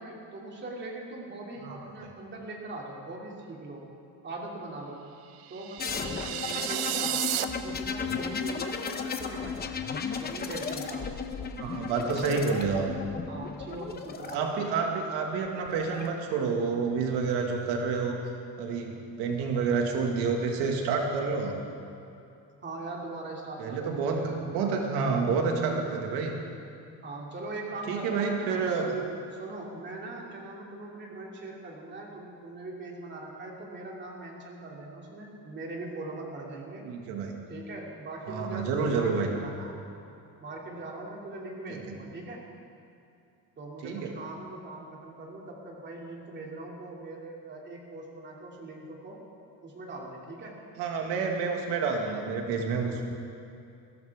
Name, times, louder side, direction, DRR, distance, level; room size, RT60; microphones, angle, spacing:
voice 1, 0.0-3.9 4.2-5.0 5.5-11.2 11.9-12.5 13.3-14.7 22.6-24.4 27.0-28.7 29.3-36.8 37.5-39.8 40.4-42.5 43.6-49.2 49.6-50.6, right 2 dB, 25° right, -2 dB, 2.7 m, -41 dB
sound 1, 5.4-7.4, right 12 dB, 70° right, 0.9 m, -32 dB
sound 2, 5.8-14.3 15.5-16.1, left 5 dB, 25° left, 0.9 m, -35 dB
voice 2, 11.6-12.9 14.2-18.2 18.6-21.6 23.6-26.4 27.9-28.9 36.8-37.4 38.3-39.3 41.7-41.8 43.8-44.1 50.8-53.1, right 5 dB, 90° right, 2 dB, 2.0 m, -29 dB
21.5 x 16.5 x 3.6 m, 2.6 s
cardioid pair, 145°, 40 cm